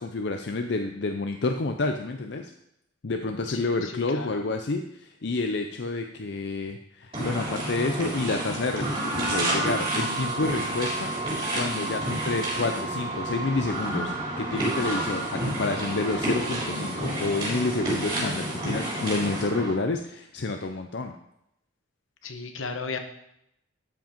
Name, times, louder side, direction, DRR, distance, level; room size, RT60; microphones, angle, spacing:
voice 1, 0.0-2.5 3.0-21.2, left 3 dB, 60° left, 5 dB, 0.6 m, -29 dB
voice 2, 3.5-4.4 22.2-23.0, left 4 dB, 80° left, 6 dB, 1.2 m, -35 dB
sound 1, 7.1-19.7, right 1 dB, 25° right, 3.9 m, -29 dB
13.0 x 5.2 x 5.2 m, 0.80 s
head